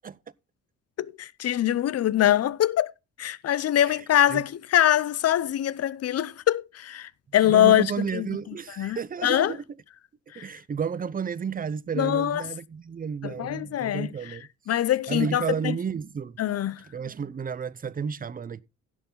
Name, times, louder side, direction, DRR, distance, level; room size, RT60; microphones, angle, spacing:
voice 1, 1.0-2.9 3.2-9.5 10.3-10.5 11.9-12.4 13.2-14.4 14.7-15.8 16.4-16.9, left 12 dB, 55° left, 0.7 m, -24 dB
voice 2, 7.5-9.6 10.4-14.5 15.1-16.4 16.9-18.6, right 6 dB, 30° right, 0.7 m, -32 dB
16.0 x 6.7 x 3.8 m
cardioid pair, 90°, 30 cm